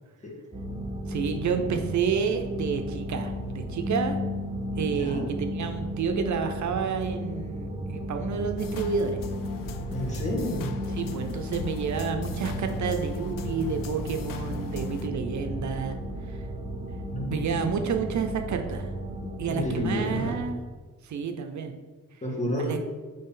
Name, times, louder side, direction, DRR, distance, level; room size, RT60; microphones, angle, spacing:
sound 1, 0.5-20.4, equal, 15° right, 0.9 m, -34 dB
voice 1, 1.1-4.2 4.8-9.2 11.0-16.0 16.3-16.5 17.3-18.9 19.4-20.6 21.0-21.7 22.6-22.8, right 6 dB, 60° right, 6 dB, 0.6 m, -30 dB
voice 2, 4.8-5.3 9.9-10.7 17.1-17.5 19.5-20.4 22.2-22.7, left 1 dB, 20° left, -2 dB, 1.8 m, -30 dB
sound 2, 8.6-15.1, left 7 dB, 80° left, 0.5 m, -39 dB
8.5 x 3.3 x 3.8 m, 1.4 s
cardioid pair, 110°, 33 cm